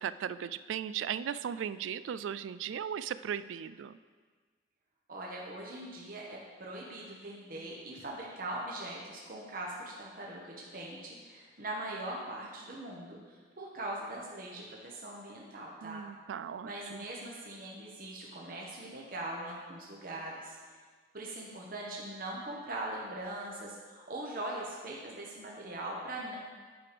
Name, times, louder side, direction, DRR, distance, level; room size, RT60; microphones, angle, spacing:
voice 1, 0.0-4.0 15.8-17.0, right 8 dB, 90° right, 15 dB, 0.3 m, -37 dB
voice 2, 5.1-16.0 16.6-20.8 21.1-26.4, right 1 dB, 50° right, -3 dB, 1.1 m, -41 dB
9.8 x 5.1 x 5.1 m, 1.5 s
head